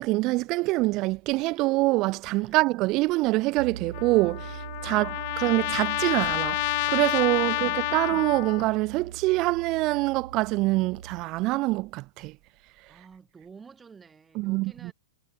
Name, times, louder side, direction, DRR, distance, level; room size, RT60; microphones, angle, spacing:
voice 1, 0.0-5.1 5.4-6.6 6.9-12.3 14.4-14.9, right 21 dB, 25° right, 0.3 m, -25 dB
sound 1, 3.6-11.2, right 8 dB, 85° right, 5.4 m, -41 dB
Trumpet, 3.9-8.7, left 25 dB, 35° left, 1.3 m, -29 dB
voice 2, 4.8-5.6 7.4-8.0 12.9-14.9, right 5 dB, 10° right, 3.8 m, -51 dB
hypercardioid pair, 170°, 0 cm